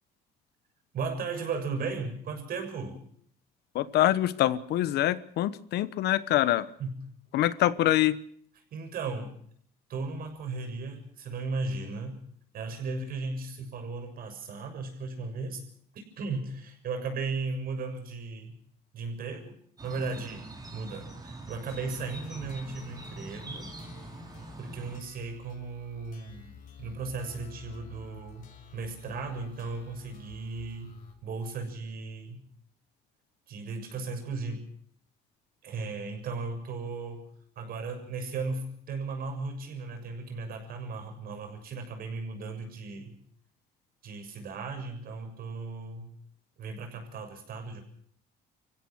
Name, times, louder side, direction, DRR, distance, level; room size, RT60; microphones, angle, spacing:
voice 1, 0.9-3.0 6.8-6.9 8.7-9.3 9.9-12.2 12.5-15.6 15.9-18.6 18.9-19.5 19.8-23.7 24.6-32.4 33.5-34.7 35.6-37.3 37.5-43.1 44.0-46.1 46.6-47.8, right 4 dB, 60° right, 5 dB, 6.9 m, -36 dB
voice 2, 3.7-6.7 7.3-8.2, left 14 dB, 75° left, 16 dB, 1.2 m, -25 dB
sound 1, 19.8-25.0, right 2 dB, 25° right, 4.4 m, -43 dB
sound 2, 21.7-31.1, left 8 dB, 55° left, 5.8 m, -52 dB
26.0 x 16.0 x 6.4 m, 0.63 s
cardioid pair, 110°, 17 cm